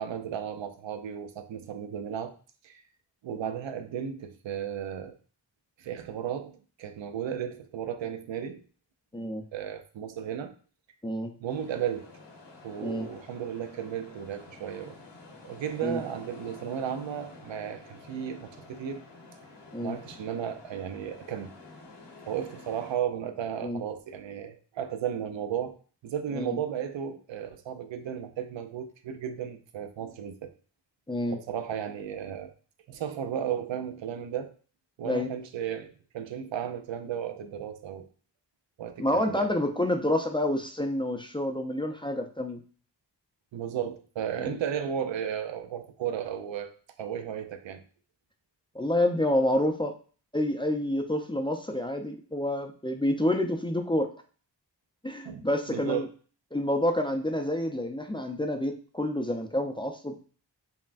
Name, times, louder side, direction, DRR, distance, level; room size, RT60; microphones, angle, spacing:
voice 1, 0.0-2.3 2.6-2.8 3.2-5.1 5.8-8.6 9.2-9.3 9.5-10.5 11.4-12.1 12.6-15.0 15.4-19.0 19.8-21.5 22.3-25.8 26.0-30.5 31.3-32.5 32.9-34.5 35.0-38.1 38.8-39.5 43.5-46.7 47.0-47.8 55.2-56.1, right 9 dB, 85° right, 8 dB, 0.5 m, -34 dB
sound 1, 11.5-22.9, left 2 dB, 70° left, 1.1 m, -50 dB
voice 2, 31.1-31.4 35.0-35.3 39.0-42.6 44.4-44.6 48.7-49.9 50.3-54.1 55.0-56.0 56.5-60.2, left 1 dB, 10° left, 4 dB, 0.4 m, -28 dB
5.4 x 2.1 x 2.5 m, 0.40 s
cardioid pair, 65°, 44 cm